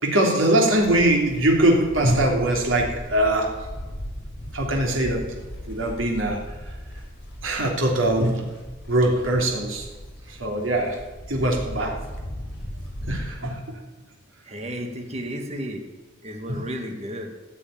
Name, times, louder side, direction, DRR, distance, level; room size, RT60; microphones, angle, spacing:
voice 1, 0.0-3.5 4.5-5.2 5.7-6.4 7.4-8.5 8.9-9.8 10.4-10.9 11.3-12.0 13.1-13.8 16.5-16.6, right 1 dB, 90° right, 0 dB, 3.2 m, -22 dB
Livestock farm animals working animals, 0.8-13.3, equal, 60° left, 6.2 m, -37 dB
voice 2, 14.4-15.9 16.2-17.3, equal, 35° right, 3 dB, 2.0 m, -33 dB
15.5 x 8.2 x 8.9 m, 1.2 s
head